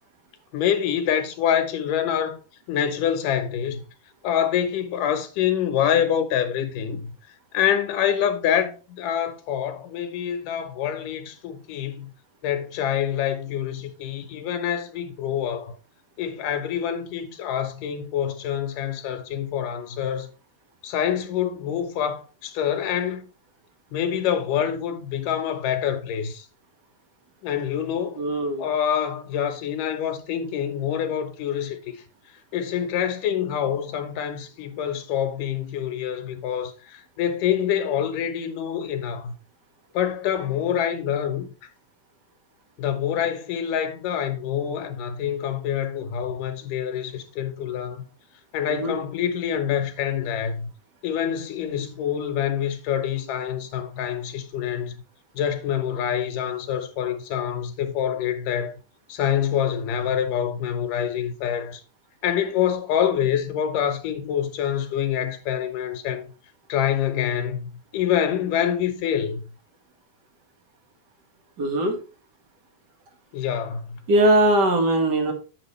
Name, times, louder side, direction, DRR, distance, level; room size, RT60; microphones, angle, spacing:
voice 1, 0.5-2.4 2.7-3.8 4.2-7.1 7.5-12.1 12.4-15.7 16.2-20.3 20.8-23.2 23.9-26.5 27.4-28.2 28.6-32.0 32.5-39.3 39.9-41.5 42.8-48.0 48.5-50.7 51.0-55.0 55.3-58.7 59.1-61.8 62.2-66.3 66.7-69.4 73.3-74.0, left 9 dB, 70° left, 2.7 m, -26 dB
voice 2, 28.2-28.7 48.7-49.0 71.6-72.0 74.1-75.3, right 1 dB, 40° right, 1.8 m, -20 dB
8.8 x 7.9 x 3.2 m
omnidirectional pair, 4.0 m